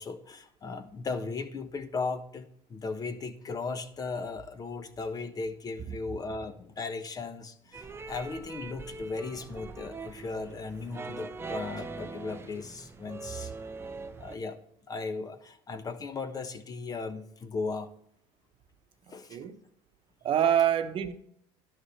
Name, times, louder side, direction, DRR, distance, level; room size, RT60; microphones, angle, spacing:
voice 1, 0.0-13.5 14.2-14.6 14.9-17.9 19.1-19.4, left 4 dB, 30° left, 1.1 m, -37 dB
sound 1, 7.7-14.4, right 3 dB, 20° right, 0.8 m, -42 dB
voice 2, 19.1-19.6 20.2-21.1, right 10 dB, 40° right, 1.1 m, -26 dB
11.5 x 6.3 x 4.6 m
supercardioid pair, 110°, 14 cm